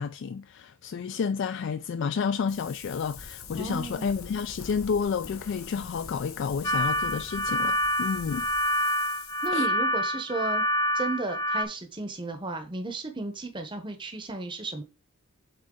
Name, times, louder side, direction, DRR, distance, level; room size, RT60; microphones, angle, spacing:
voice 1, 0.0-8.5 9.5-9.7, left 6 dB, 60° left, 0.3 m, -30 dB
Wind, 2.5-9.5, left 5 dB, 80° left, 1.2 m, -44 dB
voice 2, 3.5-4.1 9.4-10.6 10.9-14.8, right 2 dB, 20° right, 0.8 m, -34 dB
sound 1, 6.6-11.6, equal, 15° left, 0.6 m, -27 dB
7.5 x 3.8 x 3.7 m
head